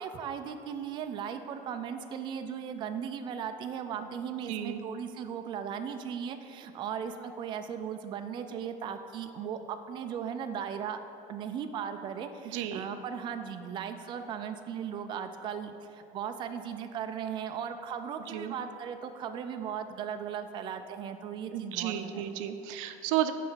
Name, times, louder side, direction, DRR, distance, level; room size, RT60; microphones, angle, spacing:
voice 1, 0.0-11.0 11.3-22.4, right 7 dB, 30° right, 7 dB, 0.3 m, -37 dB
voice 2, 4.5-4.8 12.4-12.9 18.3-18.5 21.5-23.3, right 12 dB, 85° right, 9 dB, 0.5 m, -32 dB
9.9 x 3.3 x 5.6 m, 2.7 s
cardioid pair, 150°, 16 cm